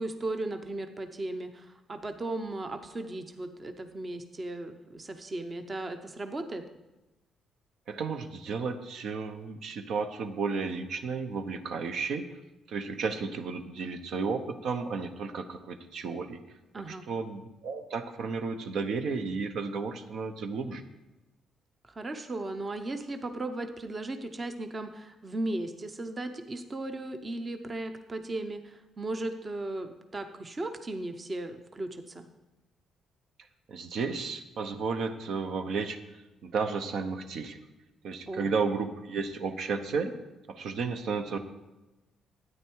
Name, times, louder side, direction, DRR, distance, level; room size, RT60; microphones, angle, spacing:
voice 1, 0.0-6.6 16.7-17.1 21.8-32.2 38.3-38.5, right 2 dB, 25° right, 7 dB, 0.7 m, -36 dB
voice 2, 7.9-12.3 12.7-16.6 16.9-20.8 33.7-37.6 38.0-40.1 40.5-41.4, right 5 dB, 65° right, 8 dB, 0.9 m, -33 dB
13.0 x 9.4 x 4.6 m, 1.1 s
cardioid pair, 145°, 0 cm